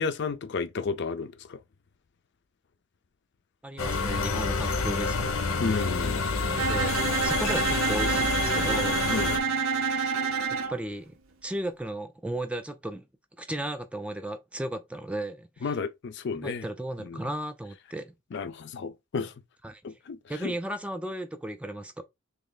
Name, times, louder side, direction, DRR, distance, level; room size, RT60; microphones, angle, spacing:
voice 1, 0.0-1.6 5.6-6.2 9.1-9.5 15.6-16.7 17.0-17.3 18.3-19.3 19.8-20.5, left 4 dB, 55° left, 0.4 m, -32 dB
voice 2, 3.6-5.3 5.6-5.9 6.5-9.1 9.9-10.1 10.5-11.1 11.4-13.1 13.4-15.8 16.3-18.1 19.6-19.8 20.3-22.0, right 1 dB, 5° right, 0.3 m, -35 dB
sound 1, 3.8-9.4, left 4 dB, 90° left, 0.7 m, -28 dB
Bowed string instrument, 6.6-10.8, right 5 dB, 75° right, 0.6 m, -27 dB
3.2 x 2.9 x 3.8 m
head